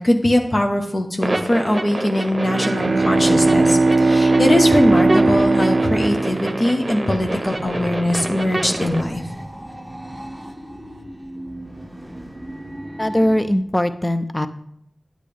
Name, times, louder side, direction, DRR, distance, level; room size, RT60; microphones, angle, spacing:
voice 1, 0.0-9.2, left 1 dB, 45° left, 2 dB, 1.0 m, -21 dB
sound 1, 1.2-9.0, right 1 dB, 40° right, 0.8 m, -27 dB
Bowed string instrument, 2.3-7.2, right 3 dB, 75° right, 0.3 m, -18 dB
sound 2, 7.4-13.6, equal, ahead, 1.2 m, -36 dB
voice 2, 13.0-14.5, equal, 25° left, 10 dB, 0.6 m, -20 dB
10.0 x 8.3 x 3.4 m, 0.73 s
cardioid pair, 40°, 0 cm